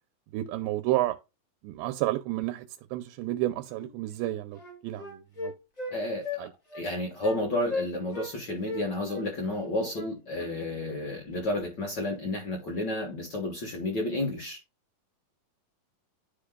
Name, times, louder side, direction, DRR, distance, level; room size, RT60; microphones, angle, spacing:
voice 1, 0.3-1.2 1.6-2.7 2.9-5.5 6.4-6.5, right 16 dB, 85° right, 2.4 m, -31 dB
Wind instrument woodwind instrument, 3.7-3.9 4.2-6.0 6.2-6.4 6.7-6.9 7.2-7.4 7.7-8.3 8.6-10.5, left 2 dB, 85° left, 0.3 m, -37 dB
voice 2, 5.9-6.5 6.7-14.6, left 1 dB, 65° left, 1.0 m, -31 dB
12.0 x 5.0 x 2.2 m
omnidirectional pair, 4.2 m